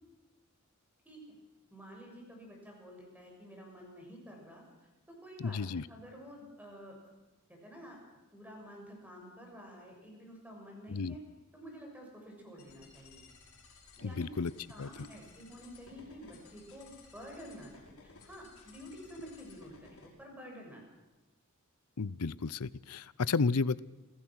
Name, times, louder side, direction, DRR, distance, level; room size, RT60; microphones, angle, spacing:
voice 1, 1.0-1.4 1.7-4.6 5.2-7.0 7.6-11.2 11.5-13.2 14.0-20.8, equal, 5° right, 0 dB, 6.8 m, -50 dB
voice 2, 5.4-5.8 10.9-11.1 14.0-14.5 14.8-14.9 22.0-23.8, left 4 dB, 90° left, 19 dB, 0.6 m, -32 dB
sound 1, 12.6-20.1, left 3 dB, 70° left, 5.9 m, -58 dB
27.5 x 16.0 x 6.3 m, 1.1 s
head